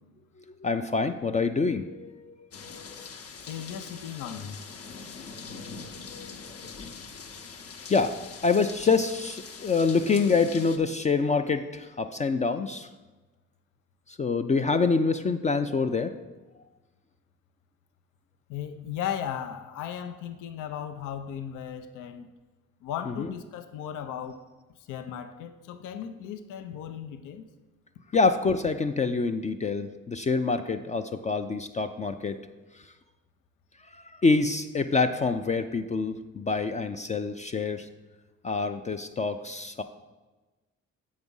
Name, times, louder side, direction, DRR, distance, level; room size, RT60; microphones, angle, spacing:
voice 1, 0.6-2.3 2.6-3.1 5.6-5.7 6.1-6.7 7.9-8.2 8.4-12.9 14.1-16.1 23.1-23.3 28.1-32.4 33.9-37.9 38.4-39.8, left 4 dB, 25° left, 7 dB, 0.3 m, -26 dB
sound 1, 2.5-10.8, left 5 dB, 50° left, 0.8 m, -43 dB
voice 2, 3.5-4.6 18.5-22.3 22.8-24.4 24.9-27.4, left 9 dB, 90° left, 8 dB, 0.5 m, -36 dB
7.2 x 4.8 x 5.4 m, 1.2 s
cardioid pair, 90°, 30 cm